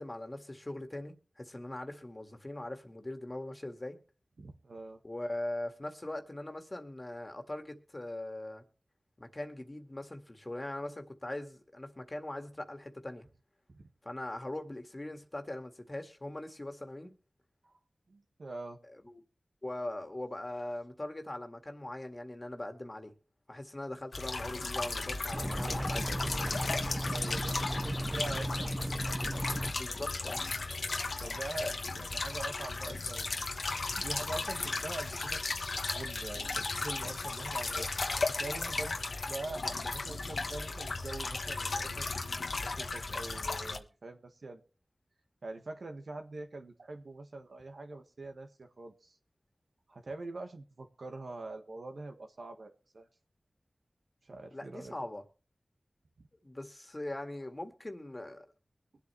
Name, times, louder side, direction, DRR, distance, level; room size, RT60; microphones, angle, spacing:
voice 1, 0.0-4.0 5.0-8.6 9.2-13.3 14.0-17.1 18.9-19.2 19.6-23.1 23.5-26.7 29.7-30.4 38.8-38.9 54.5-55.2 56.4-58.5, left 1 dB, 35° left, 1.9 m, -41 dB
voice 2, 4.4-5.0 13.7-13.9 18.1-18.8 27.1-28.9 30.8-33.3 33.9-35.4 35.9-37.9 38.3-39.0 39.3-42.1 42.6-44.6 45.4-49.2 49.9-53.1 54.2-54.9 56.2-56.3, right 2 dB, 75° right, 1.6 m, -44 dB
sound 1, 24.1-43.8, left 3 dB, 80° left, 1.1 m, -35 dB
sound 2, 25.3-29.7, right 1 dB, 15° right, 0.6 m, -35 dB
22.5 x 8.3 x 3.2 m
cardioid pair, 40°, 0 cm